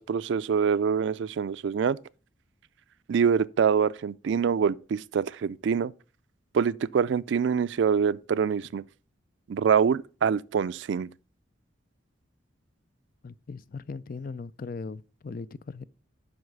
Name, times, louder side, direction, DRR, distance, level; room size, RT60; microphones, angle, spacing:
voice 1, 0.0-2.0 3.1-5.9 6.5-8.8 9.5-11.1, right 6 dB, 70° right, 0.3 m, -25 dB
voice 2, 13.2-15.8, left 4 dB, 45° left, 0.4 m, -39 dB
7.9 x 5.6 x 5.2 m
head